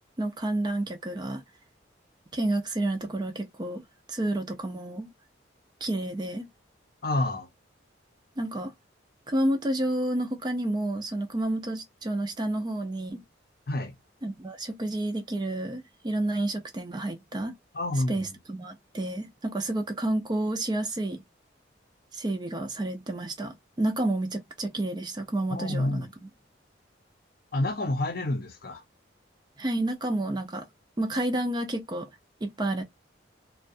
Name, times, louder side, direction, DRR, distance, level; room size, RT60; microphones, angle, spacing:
voice 1, 0.2-1.4 2.3-3.8 4.1-5.1 5.8-6.5 8.4-8.7 9.3-13.2 14.2-17.5 18.1-21.2 22.1-26.1 29.6-30.7 31.0-32.1 32.4-32.8, right 1 dB, 20° right, 0.4 m, -30 dB
voice 2, 7.0-7.5 13.7-13.9 17.7-18.3 25.5-26.1 27.5-28.8, left 1 dB, 50° left, 0.6 m, -28 dB
2.4 x 2.2 x 2.6 m
head